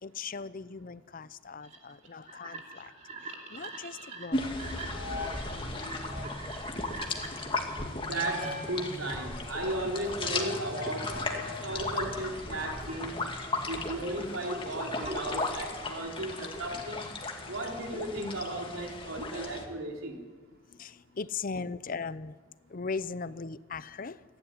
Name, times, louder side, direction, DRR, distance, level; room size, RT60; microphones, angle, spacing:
voice 1, 0.0-2.9 3.5-4.5 5.9-6.3 20.7-22.4 22.7-24.2, left 4 dB, 45° left, 16 dB, 0.6 m, -39 dB
sound 1, 1.6-8.7 9.2-12.1 12.4-16.0, equal, 35° right, 2.9 m, -42 dB
sound 2, 4.3-19.7, left 2 dB, 25° left, 2.2 m, -36 dB
voice 2, 8.0-13.2 13.7-17.1 17.5-20.2, right 1 dB, 90° right, 1 dB, 4.0 m, -35 dB
29.0 x 11.5 x 9.9 m, 1.5 s
head